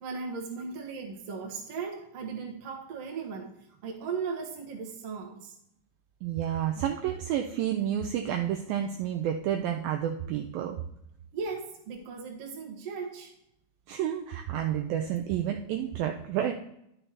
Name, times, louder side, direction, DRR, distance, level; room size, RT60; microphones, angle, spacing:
voice 1, 0.0-3.5 3.8-5.6 11.3-13.3, right 5 dB, 65° right, 0 dB, 1.6 m, -37 dB
voice 2, 6.2-10.8 13.9-16.5, right 10 dB, 85° right, 4 dB, 2.0 m, -30 dB
11.0 x 6.7 x 2.9 m, 0.77 s
omnidirectional pair, 4.7 m